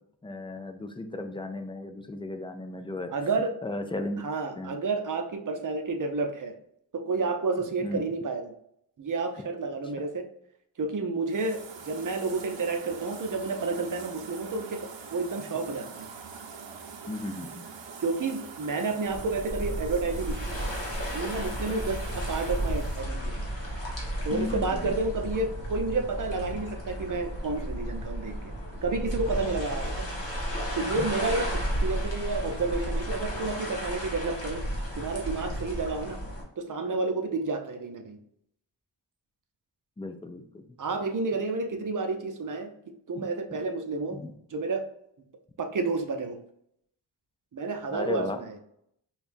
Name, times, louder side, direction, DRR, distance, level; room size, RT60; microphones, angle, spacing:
voice 1, 0.2-3.1 3.6-4.8 7.8-8.1 17.1-17.7 24.3-24.9 30.9-31.1 40.0-40.6 43.2-43.3 44.1-44.3 47.9-48.4, left 2 dB, 15° left, 6 dB, 0.3 m, -35 dB
voice 2, 3.1-3.5 4.2-6.5 6.9-8.5 9.0-10.3 10.8-16.1 18.0-20.5 21.1-23.3 24.2-28.3 28.8-30.1 30.7-34.6 35.0-36.2 36.6-38.2 40.8-42.7 43.1-44.2 44.5-44.9 45.6-46.4 47.5-48.5, right 3 dB, 45° right, 5 dB, 0.6 m, -30 dB
sound 1, 11.3-23.0, right 5 dB, 85° right, 0.6 m, -44 dB
sound 2, 19.1-36.4, equal, 30° left, 1.4 m, -33 dB
5.4 x 2.3 x 2.6 m, 0.73 s
wide cardioid pair, 110°, 43 cm